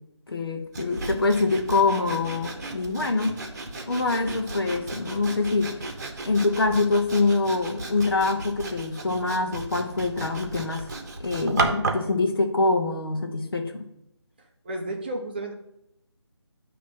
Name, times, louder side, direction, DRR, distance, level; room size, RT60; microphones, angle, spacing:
voice 1, 0.3-3.4 3.9-5.7 6.2-10.9 11.2-13.9, left 3 dB, 55° left, 4 dB, 1.2 m, -25 dB
Sawing, 0.7-12.1, right 3 dB, 40° right, 1.0 m, -34 dB
voice 2, 14.6-15.6, right 1 dB, 20° right, 1 dB, 0.6 m, -32 dB
9.2 x 3.1 x 6.2 m, 0.82 s
figure-of-eight pair, 160°, 15 cm